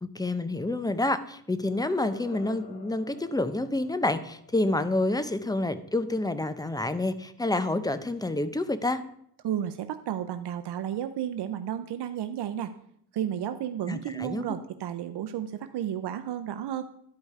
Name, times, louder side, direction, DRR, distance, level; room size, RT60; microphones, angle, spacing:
voice 1, 0.0-9.0 13.9-14.5, left 2 dB, 10° left, 12 dB, 0.6 m, -28 dB
sound 1, 1.6-6.5, left 4 dB, 75° left, 1.4 m, -51 dB
voice 2, 9.4-12.7 13.1-16.8, right 10 dB, 75° right, 9 dB, 0.6 m, -32 dB
11.5 x 5.3 x 4.8 m, 0.69 s
cardioid pair, 90°, 40 cm